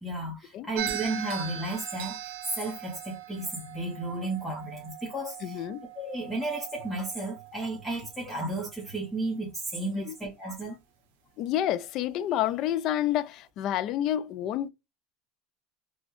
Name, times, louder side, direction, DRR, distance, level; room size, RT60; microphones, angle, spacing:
voice 1, 0.0-5.7 5.9-10.8, right 2 dB, 5° left, 0.9 m, -33 dB
sound 1, 0.8-9.1, right 10 dB, 85° right, 0.5 m, -40 dB
voice 2, 5.4-5.9 9.9-10.1 11.4-14.7, left 11 dB, 40° left, 0.3 m, -29 dB
4.1 x 2.2 x 3.0 m
cardioid pair, 165°, 0 cm